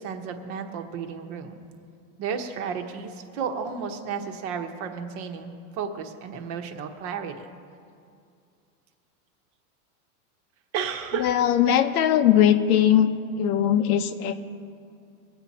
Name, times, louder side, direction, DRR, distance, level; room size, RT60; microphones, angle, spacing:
voice 1, 0.0-1.6 2.2-7.5 10.7-11.3, right 6 dB, 40° right, 5 dB, 1.2 m, -33 dB
voice 2, 11.2-13.1 13.4-14.4, left 10 dB, 80° left, 8 dB, 1.1 m, -20 dB
22.0 x 8.9 x 4.2 m, 2.4 s
supercardioid pair, 155°, 44 cm